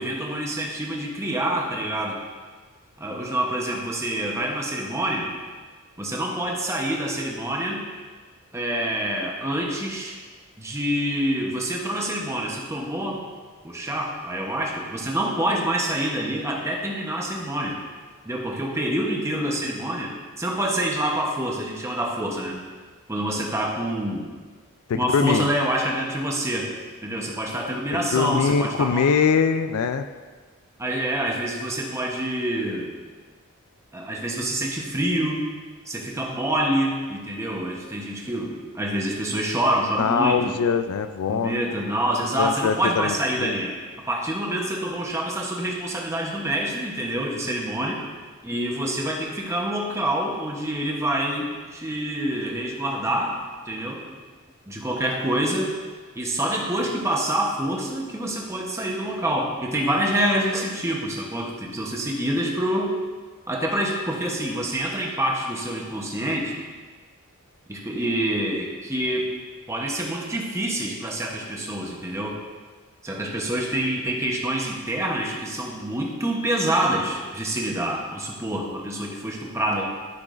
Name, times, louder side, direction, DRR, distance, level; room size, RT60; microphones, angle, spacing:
voice 1, 0.0-2.2 3.0-5.3 6.0-7.8 8.5-10.2 10.6-13.2 13.6-17.8 18.2-22.6 23.1-24.3 24.9-26.7 27.0-29.0 30.8-32.9 33.9-35.4 35.9-40.5 41.3-43.8 44.1-48.0 48.4-53.4 53.7-54.2 54.7-55.7 56.1-62.9 63.5-66.5 67.7-69.3 69.7-72.4 73.0-79.9, right 1 dB, 15° right, -1 dB, 0.9 m, -26 dB
voice 2, 24.9-25.5 28.1-30.1 40.0-41.6 42.4-43.5, left 6 dB, 75° left, 10 dB, 0.3 m, -22 dB
12.0 x 6.1 x 2.5 m, 1.5 s
head